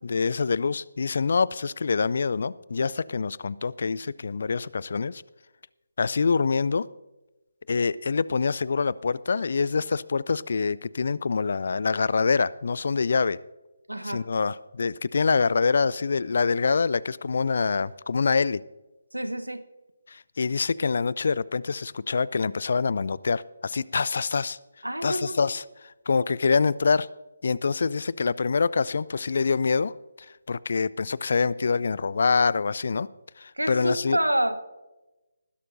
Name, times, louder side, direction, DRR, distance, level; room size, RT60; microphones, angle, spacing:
voice 1, 0.0-5.2 6.0-6.8 7.7-13.4 14.0-18.6 20.1-24.6 25.0-25.6 26.1-27.1 27.4-29.9 30.5-33.1 33.4-34.2, left 5 dB, 50° left, 21 dB, 0.4 m, -25 dB
voice 2, 13.9-14.2 19.1-19.6 24.8-25.4 33.6-34.6, right 1 dB, 85° right, 10 dB, 1.1 m, -27 dB
20.0 x 11.0 x 2.6 m, 1.0 s
figure-of-eight pair, 150°, 0 cm